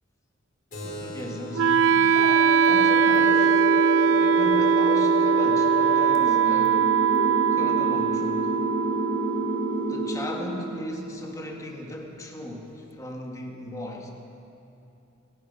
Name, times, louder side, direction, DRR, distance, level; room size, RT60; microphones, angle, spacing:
Keyboard (musical), 0.7-5.8, right 1 dB, 45° left, 3.9 m, -44 dB
voice 1, 0.8-2.3 2.7-3.8 4.1-6.9 7.5-8.5 9.9-14.1, left 1 dB, 15° left, 0 dB, 1.8 m, -37 dB
Wind instrument woodwind instrument, 1.6-11.6, right 7 dB, 70° right, 0.4 m, -22 dB
sound 1, 2.2-10.2, left 1 dB, 85° left, 2.2 m, -30 dB
25.5 x 9.4 x 5.5 m, 3.0 s
head